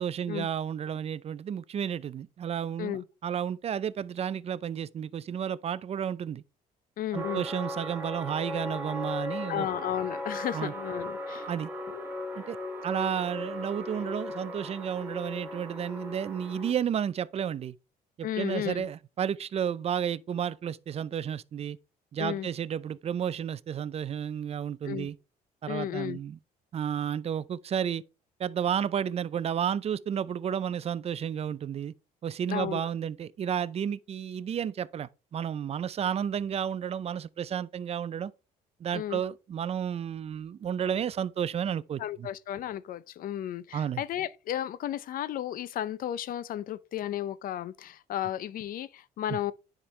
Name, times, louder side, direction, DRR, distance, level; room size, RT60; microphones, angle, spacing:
voice 1, 0.0-6.4 7.1-9.7 10.5-10.7 11.5-11.7 12.4-12.6 12.8-17.7 18.2-21.8 22.1-25.2 25.6-26.4 26.7-28.0 28.4-31.9 32.2-38.3 38.8-42.3 43.7-44.0 49.3-49.4, right 8 dB, 40° right, 0.5 m, -32 dB
voice 2, 7.0-7.5 9.5-11.5 11.9-12.1 18.2-18.9 22.2-22.5 24.8-25.1 25.7-26.2 32.5-32.8 38.9-39.2 42.0-49.5, left 11 dB, 55° left, 0.6 m, -34 dB
sound 1, 7.1-16.7, left 1 dB, 10° right, 2.0 m, -37 dB
9.7 x 5.1 x 3.2 m
cardioid pair, 110°, 17 cm